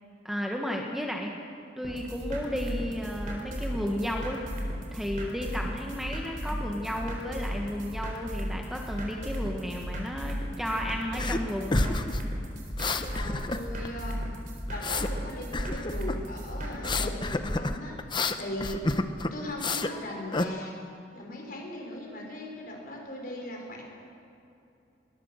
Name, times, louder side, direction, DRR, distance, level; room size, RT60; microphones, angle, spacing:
voice 1, 0.2-1.4 1.8-4.4 4.9-12.0, equal, ahead, 1 dB, 1.5 m, -33 dB
sound 1, 1.8-17.1, equal, 50° right, 4.2 m, -35 dB
sound 2, 11.2-11.4 11.7-13.9 14.2-15.1 15.5-16.2 16.7-19.9 20.3-20.5, left 2 dB, 25° left, 0.9 m, -29 dB
voice 2, 13.1-14.2 14.7-18.8 19.3-20.7 21.1-23.8, left 1 dB, 55° left, 0 dB, 5.1 m, -39 dB
20.5 x 20.0 x 6.6 m, 2.7 s
head